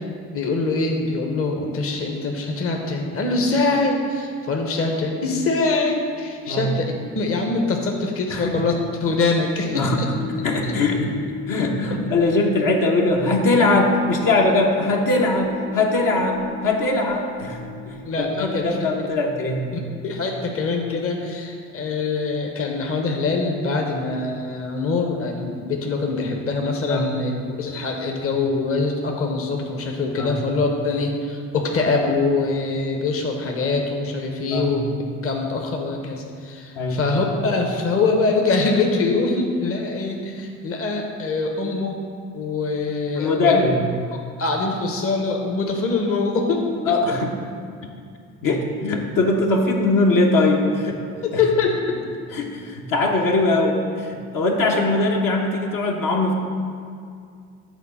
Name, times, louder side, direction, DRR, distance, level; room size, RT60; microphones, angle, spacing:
voice 1, 0.3-8.7 9.0-10.1 10.6-10.7 18.0-18.8 20.0-42.0 42.3-43.6 44.4-46.6 51.2-51.7, left 3 dB, 35° left, 1 dB, 1.0 m, -23 dB
voice 2, 8.3-8.6 9.7-10.0 10.4-11.1 11.5-17.6 17.9-19.7 26.9-27.1 30.2-30.3 34.5-34.8 36.8-37.0 43.2-43.8 46.9-47.3 48.4-51.0 51.3-51.4 52.3-56.3, left 2 dB, 55° left, 0 dB, 1.1 m, -21 dB
sound 1, 10.1-19.2, left 6 dB, 85° left, 1.9 m, -37 dB
8.3 x 3.9 x 5.6 m, 2.3 s
hypercardioid pair, 60°, 39 cm